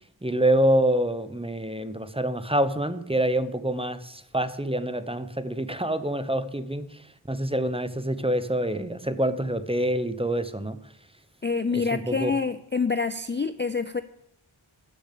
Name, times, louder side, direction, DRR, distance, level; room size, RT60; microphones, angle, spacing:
voice 1, 0.2-6.9 7.3-10.8 11.7-12.3, right 1 dB, 10° right, 11 dB, 0.8 m, -26 dB
voice 2, 11.4-14.0, left 4 dB, 25° left, 12 dB, 0.4 m, -27 dB
8.0 x 6.8 x 8.3 m, 0.77 s
wide cardioid pair, 45°, 50 cm